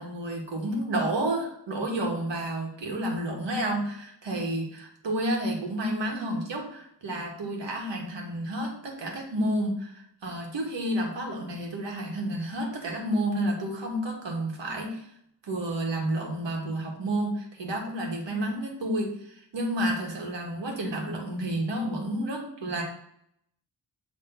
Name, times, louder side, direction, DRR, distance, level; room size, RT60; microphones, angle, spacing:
voice 1, 0.0-15.1 15.4-22.8, right 1 dB, 85° right, 1 dB, 1.9 m, -30 dB
8.0 x 3.6 x 4.0 m, 0.72 s
wide cardioid pair, 170°, 42 cm